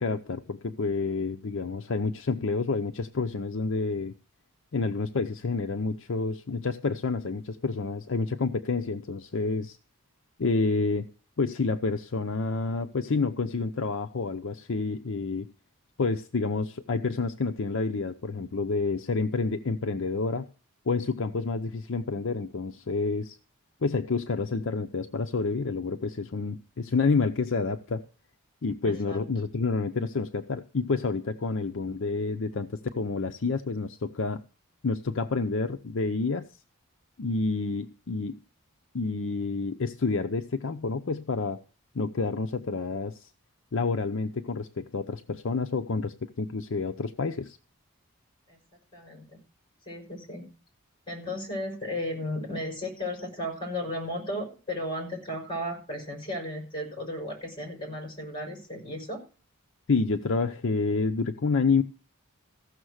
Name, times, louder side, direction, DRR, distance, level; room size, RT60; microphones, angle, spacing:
voice 1, 0.0-4.1 4.7-9.8 10.4-11.1 11.4-15.5 16.0-20.5 20.9-23.4 23.8-28.0 28.6-34.4 34.8-36.5 37.2-38.3 38.9-41.6 41.9-43.3 43.7-47.6 59.9-61.8, left 4 dB, 55° left, 0.6 m, -29 dB
voice 2, 28.8-29.2 48.5-48.6 48.9-49.4 49.9-50.5 51.1-59.2, left 1 dB, 20° left, 5.2 m, -35 dB
15.0 x 6.4 x 6.3 m
head